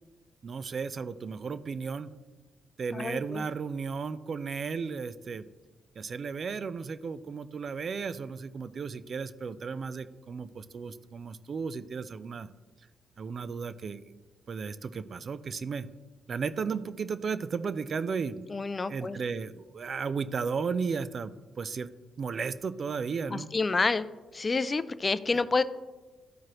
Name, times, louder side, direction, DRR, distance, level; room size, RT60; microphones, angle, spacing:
voice 1, 0.4-2.1 2.8-5.5 6.0-12.5 13.2-14.0 14.5-15.9 16.3-18.5 18.9-21.9 22.2-23.5, right 5 dB, 50° right, 14 dB, 0.4 m, -34 dB
voice 2, 2.9-3.4 18.5-19.2 23.3-24.1 24.3-25.6, left 3 dB, 35° left, 14 dB, 0.4 m, -28 dB
13.0 x 4.7 x 3.0 m, 1.2 s
supercardioid pair, 65°, 0 cm